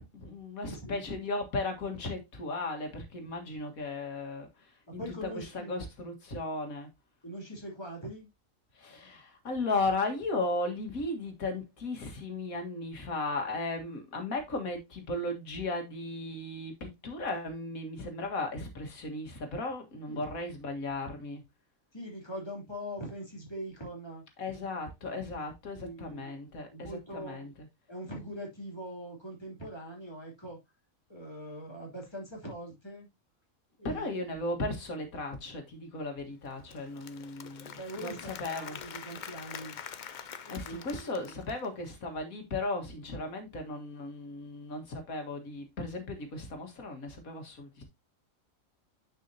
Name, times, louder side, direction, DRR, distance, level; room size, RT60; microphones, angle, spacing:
voice 1, 0.0-6.9 8.7-21.4 24.4-27.7 33.8-38.8 40.5-47.8, left 2 dB, 90° left, 2.2 m, -36 dB
voice 2, 0.6-1.0 4.9-5.8 7.2-8.3 20.1-20.2 21.9-24.2 25.7-26.3 26.7-27.5 27.9-30.6 31.1-33.1 33.8-34.1 37.7-39.8 40.4-41.1, equal, 20° left, 2.9 m, -42 dB
Applause / Crowd, 36.5-41.9, left 7 dB, 50° left, 0.6 m, -45 dB
9.7 x 5.5 x 2.7 m
omnidirectional pair, 1.4 m